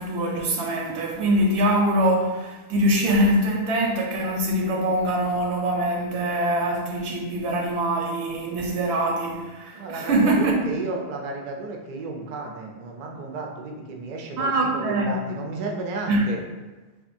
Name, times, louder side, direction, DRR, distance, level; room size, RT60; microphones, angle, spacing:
voice 1, 0.0-10.8 14.4-15.3 16.1-16.2, right 1 dB, 90° right, 1 dB, 0.9 m, -23 dB
voice 2, 9.7-16.4, right 3 dB, 55° right, 1 dB, 0.5 m, -33 dB
3.6 x 2.5 x 2.6 m, 1.2 s
omnidirectional pair, 1.1 m